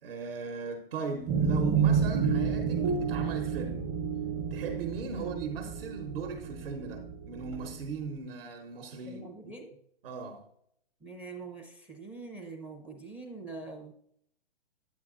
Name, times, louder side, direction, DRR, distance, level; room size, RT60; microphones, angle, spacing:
voice 1, 0.0-3.8 4.5-9.5 10.0-10.5, right 5 dB, 65° right, 1.0 m, -38 dB
sound 1, 1.3-7.8, right 6 dB, 35° right, 0.8 m, -30 dB
voice 2, 9.1-9.8 11.0-13.9, right 3 dB, 5° right, 0.4 m, -44 dB
9.5 x 7.8 x 2.4 m
hypercardioid pair, 130°, 31 cm